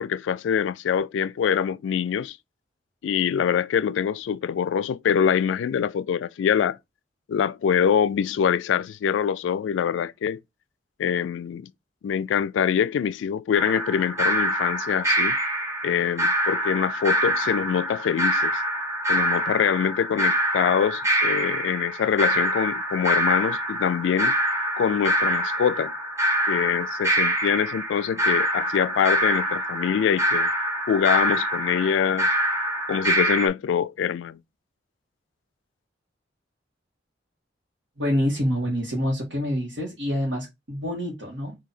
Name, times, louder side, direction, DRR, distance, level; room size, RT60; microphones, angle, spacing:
voice 1, 0.0-2.4 3.0-6.8 7.3-10.4 11.0-11.7 12.0-15.4 15.8-18.6 19.1-24.3 24.8-25.9 26.5-30.5 30.9-32.3 32.9-34.4, left 8 dB, 85° left, 0.3 m, -24 dB
sound 1, 13.5-33.5, right 1 dB, 15° right, 1.0 m, -25 dB
voice 2, 38.0-41.6, equal, 80° right, 1.5 m, -26 dB
3.8 x 2.7 x 4.1 m
head